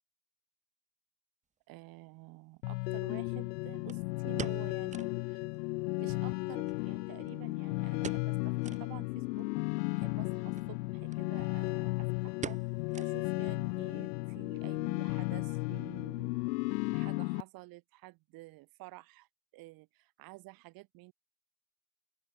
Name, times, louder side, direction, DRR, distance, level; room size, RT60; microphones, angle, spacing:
voice 1, 1.7-5.5 6.0-9.5 9.9-12.6 13.0-16.4 16.9-19.3 19.5-21.1, right 22 dB, 45° right, 4.6 m, -51 dB
sound 1, 1.8-1.9 3.9-5.2 5.5-5.6 5.9-6.0 6.7-7.5 8.0-8.4 8.6-8.9 9.4-9.5 10.4-10.7 11.1-11.2 11.5-11.9 12.4-13.5 13.8-13.9 14.5-14.8 15.1-15.2, right 7 dB, 15° right, 1.2 m, -44 dB
sound 2, 2.6-17.4, left 26 dB, 75° left, 1.3 m, -34 dB
open air
cardioid pair, 175°, 49 cm